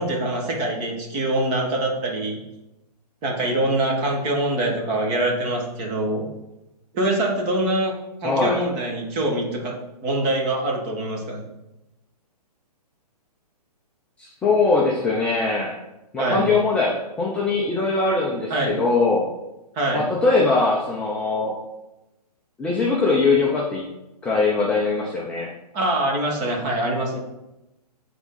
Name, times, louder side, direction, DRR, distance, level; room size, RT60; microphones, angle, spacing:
voice 1, 0.0-2.4 3.2-6.3 6.9-7.9 8.2-9.7 10.0-11.5 16.2-16.5 18.5-18.8 19.7-20.1 25.7-27.2, right 1 dB, 25° right, 0 dB, 1.4 m, -24 dB
voice 2, 8.2-8.6 14.2-15.7 16.1-19.3 19.9-21.6 22.6-23.8 24.2-25.5, left 3 dB, 5° left, -4 dB, 0.4 m, -21 dB
7.8 x 3.6 x 3.8 m, 0.95 s
hypercardioid pair, 145°, 21 cm